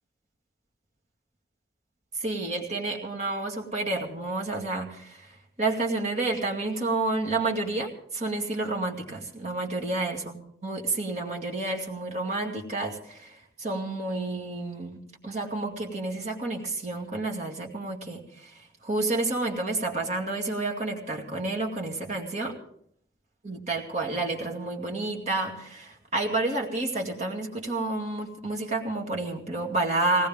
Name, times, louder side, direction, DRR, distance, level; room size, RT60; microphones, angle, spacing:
voice 1, 2.2-22.6 23.4-30.3, right 2 dB, 35° right, 0 dB, 2.2 m, -30 dB
19.5 x 18.0 x 3.6 m, 0.66 s
head